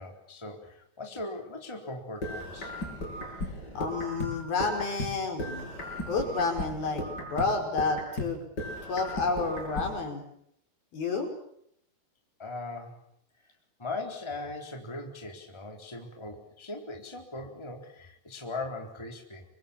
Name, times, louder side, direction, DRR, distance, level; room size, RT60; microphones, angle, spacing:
voice 1, 0.0-2.7 12.4-13.0 13.8-19.4, left 2 dB, 5° left, 2 dB, 3.5 m, -39 dB
sound 1, 2.2-5.1 5.4-8.3 8.6-9.9, left 1 dB, 25° left, 7.6 m, -36 dB
voice 2, 3.8-8.4 8.9-10.2 10.9-11.3, left 3 dB, 65° left, 3 dB, 7.2 m, -30 dB
28.0 x 24.5 x 7.3 m, 0.70 s
omnidirectional pair, 4.7 m